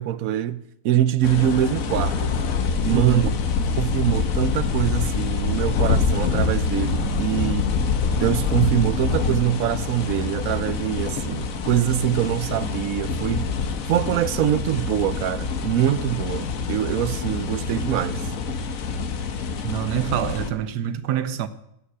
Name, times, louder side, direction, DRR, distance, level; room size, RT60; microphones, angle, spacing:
voice 1, 0.0-2.3 2.8-3.3 3.8-7.7 8.1-13.5 13.9-18.2, right 12 dB, 65° right, 1.0 m, -24 dB
sound 1, 1.2-20.5, left 5 dB, 60° left, 1.4 m, -25 dB
voice 2, 2.9-3.4 19.6-21.5, right 10 dB, 85° right, 1.5 m, -26 dB
14.0 x 6.0 x 9.6 m
omnidirectional pair, 1.7 m